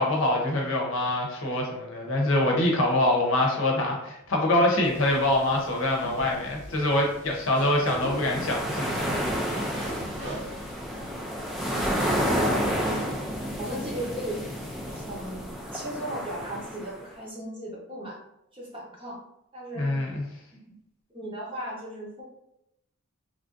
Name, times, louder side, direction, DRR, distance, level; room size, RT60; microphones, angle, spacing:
voice 1, 0.0-9.1 19.8-20.2, left 1 dB, 65° left, 0 dB, 0.7 m, -25 dB
sound 1, 4.8-10.7, right 1 dB, 60° right, 1.1 m, -40 dB
sound 2, 7.8-17.0, equal, ahead, 0.3 m, -30 dB
voice 2, 11.7-13.0 13.6-14.4 14.8-18.2 18.5-19.2 19.5-20.0 21.1-22.2, right 1 dB, 25° right, -4 dB, 0.8 m, -36 dB
3.2 x 2.5 x 2.5 m, 0.80 s
head